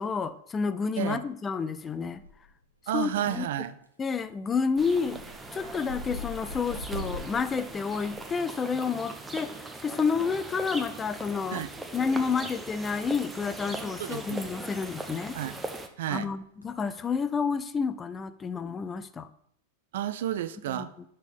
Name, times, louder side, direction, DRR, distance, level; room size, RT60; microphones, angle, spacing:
voice 1, 0.0-2.2 2.9-3.4 4.0-5.2 5.5-11.6 11.9-15.4 16.1-19.3 20.7-20.9, left 5 dB, 20° left, 12 dB, 0.4 m, -30 dB
sound 1, 2.1-2.6 3.0-3.5 3.8-4.1 4.4-8.9 10.2-10.4 11.6-12.4 12.7-12.9 13.4-13.5 13.8-13.9 14.2-14.4 14.7-14.8 16.4-16.6, left 1 dB, 85° right, 0.8 m, -42 dB
voice 2, 2.9-3.8 11.5-11.7 14.0-14.4 15.3-15.6 16.0-16.3 19.9-20.9, right 11 dB, 55° right, 13 dB, 0.4 m, -31 dB
sound 2, 4.8-15.9, right 2 dB, 10° right, 0.7 m, -40 dB
6.0 x 4.3 x 5.2 m, 0.71 s
figure-of-eight pair, 90°, 0 cm